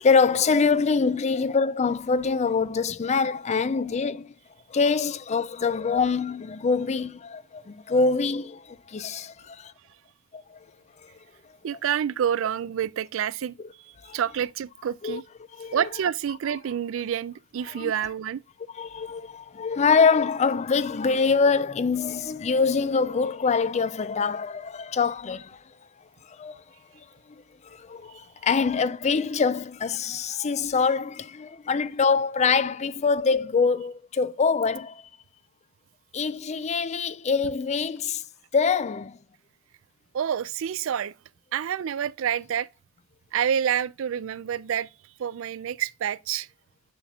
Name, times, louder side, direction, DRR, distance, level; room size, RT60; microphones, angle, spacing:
voice 1, 0.0-4.3 4.7-9.7 10.3-10.6 13.6-13.7 14.0-14.2 15.0-15.2 15.6-15.8 17.8-17.9 18.7-25.6 26.3-26.6 27.6-35.0 36.1-38.2 38.5-39.2, left 5 dB, 30° left, 0.4 m, -24 dB
voice 2, 11.6-15.2 15.7-18.4 40.1-41.1 41.5-42.7 43.3-44.9 45.2-46.5, right 9 dB, 65° right, 0.3 m, -28 dB
7.4 x 7.0 x 2.3 m
head